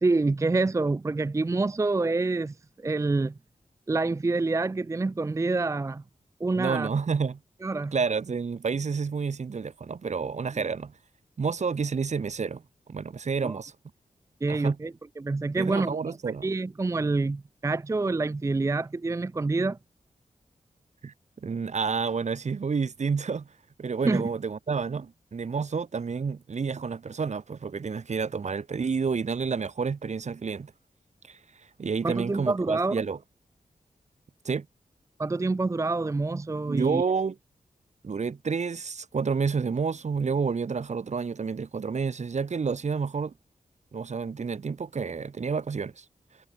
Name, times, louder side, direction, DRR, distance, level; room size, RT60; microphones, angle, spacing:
voice 1, 0.0-3.3 3.9-6.0 6.4-6.9 7.6-7.9 13.4-13.6 14.4-16.2 16.4-19.8 24.0-24.3 32.0-33.0 35.2-37.0, right 3 dB, 20° right, 0.5 m, -27 dB
voice 2, 6.5-7.4 7.9-10.9 11.4-12.6 12.9-13.7 14.5-14.8 15.5-16.5 21.0-21.1 21.4-23.5 23.8-30.7 31.3-33.2 34.4-34.6 36.7-37.4 38.0-43.3 43.9-46.0, right 5 dB, 55° right, 1.5 m, -29 dB
wide cardioid pair, 80°, 14 cm